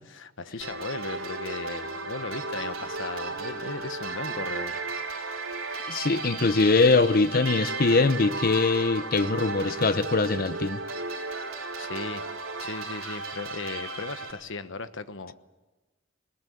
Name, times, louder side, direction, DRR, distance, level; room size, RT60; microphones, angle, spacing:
voice 1, 0.1-4.8 11.8-12.2 12.6-15.3, left 3 dB, 65° left, 1.2 m, -37 dB
sound 1, 0.6-14.3, right 3 dB, 80° right, 3.8 m, -34 dB
voice 2, 5.9-10.8, left 3 dB, 45° left, 0.8 m, -22 dB
20.5 x 20.0 x 8.6 m
head